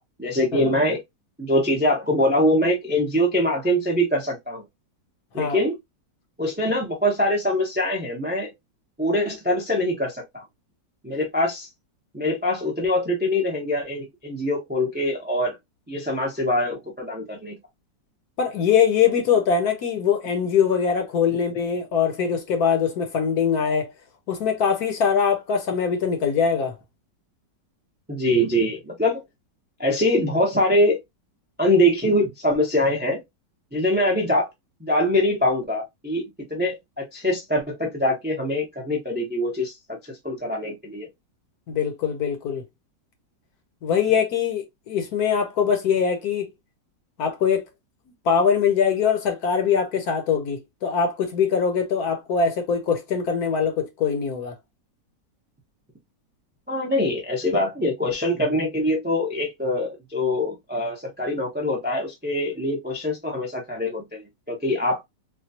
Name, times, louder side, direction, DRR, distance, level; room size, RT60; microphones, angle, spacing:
voice 1, 0.2-1.0 1.4-4.6 5.3-5.8 6.4-8.5 9.0-10.4 11.0-11.7 12.1-15.6 15.9-17.6 28.1-29.2 29.8-31.0 31.6-33.2 33.7-34.5 34.8-36.2 36.5-40.0 40.2-41.1 56.7-65.0, left 1 dB, 15° right, 0.4 m, -23 dB
voice 2, 18.4-23.9 24.3-26.8 41.7-42.6 43.8-46.5 47.2-47.7 48.2-54.5, left 7 dB, 65° left, 1.2 m, -22 dB
4.3 x 2.3 x 2.7 m
omnidirectional pair, 2.0 m